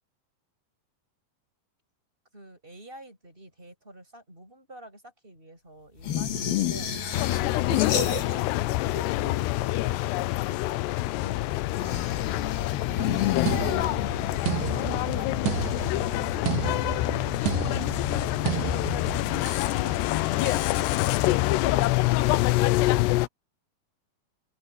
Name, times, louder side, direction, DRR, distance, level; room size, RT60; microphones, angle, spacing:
voice 1, 2.3-7.8 8.1-9.1 9.5-12.0 12.5-17.5 17.8-21.2 21.5-21.9, right 1 dB, 10° right, 6.7 m, -49 dB
sound 1, 6.0-8.6 8.9-9.7 11.7-14.2, left 9 dB, 65° left, 4.2 m, -30 dB
sound 2, 7.1-23.3, left 18 dB, 90° left, 2.9 m, -26 dB
sound 3, 13.5-19.8 20.5-20.8, right 11 dB, 85° right, 3.2 m, -33 dB
open air
omnidirectional pair, 4.8 m